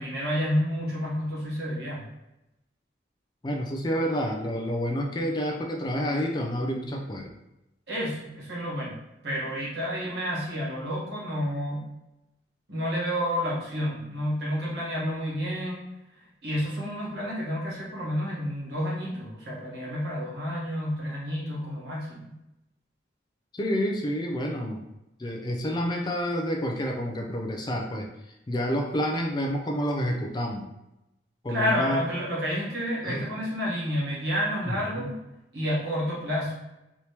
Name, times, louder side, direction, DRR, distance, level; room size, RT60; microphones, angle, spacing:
voice 1, 0.0-2.1 7.9-11.9 12.7-15.9 16.4-22.3 31.5-35.1 35.5-36.5, equal, 65° right, -5 dB, 1.2 m, -30 dB
voice 2, 3.4-7.3 23.5-24.8 25.2-30.7 31.4-32.0 33.0-33.3 34.7-35.1, equal, 25° left, 1 dB, 0.4 m, -29 dB
3.4 x 2.9 x 2.8 m, 0.91 s
head